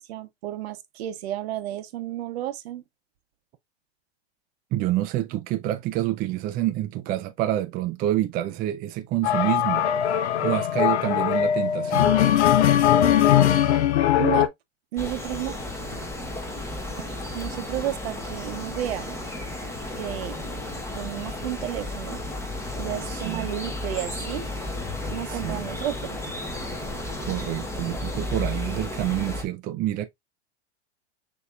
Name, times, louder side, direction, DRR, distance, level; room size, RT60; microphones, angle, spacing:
voice 1, 0.0-2.8 14.2-14.5 14.9-15.6 16.0-16.1 17.0-19.2 20.0-20.7 20.9-22.2 22.8-24.5 25.1-26.2, right 13 dB, 65° right, 0.9 m, -32 dB
voice 2, 4.7-9.9 10.4-12.2 23.2-23.5 25.3-25.6 27.2-30.1, right 14 dB, 25° right, 0.4 m, -27 dB
sound 1, 9.2-14.5, left 10 dB, 75° left, 0.7 m, -20 dB
sound 2, 15.0-29.4, left 1 dB, 10° left, 1.1 m, -33 dB
6.5 x 2.9 x 2.4 m
hypercardioid pair, 105°, 34 cm